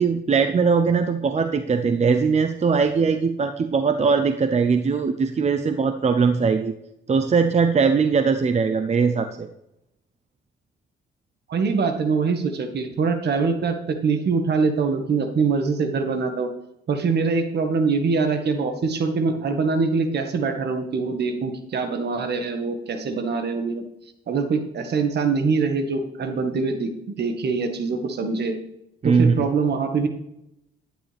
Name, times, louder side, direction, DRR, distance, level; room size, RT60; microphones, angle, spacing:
voice 1, 0.0-6.7 7.1-9.5 29.0-29.3, right 5 dB, 35° right, 8 dB, 0.8 m, -20 dB
voice 2, 11.5-16.5 16.9-23.8 24.3-26.9 27.2-28.6 29.0-30.1, right 4 dB, 55° right, 6 dB, 1.8 m, -23 dB
11.5 x 10.0 x 3.5 m, 0.81 s
cardioid pair, 90°, 20 cm